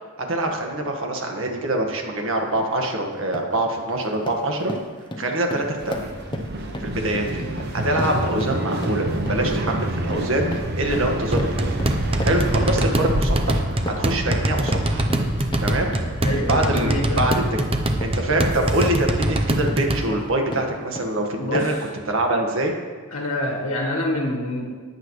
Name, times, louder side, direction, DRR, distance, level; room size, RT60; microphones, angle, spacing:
voice 1, 0.3-4.7 5.2-6.1 6.8-7.4 7.7-11.8 12.2-15.0 15.6-15.9 16.5-16.9 17.2-17.3 18.0-21.7 22.1-22.7, right 1 dB, 65° right, 2 dB, 1.7 m, -24 dB
sound 1, 2.5-2.7 3.1-3.6 3.9-21.2 21.5-21.9, left 1 dB, 20° left, 0.9 m, -35 dB
sound 2, 5.8-19.5, right 1 dB, 50° right, 1.0 m, -29 dB
sound 3, 11.3-20.0, right 1 dB, 25° right, 0.8 m, -24 dB
voice 2, 16.2-17.2 21.3-21.7 23.1-24.7, left 1 dB, 85° left, -2 dB, 1.7 m, -26 dB
20.0 x 8.0 x 3.3 m, 1.5 s
head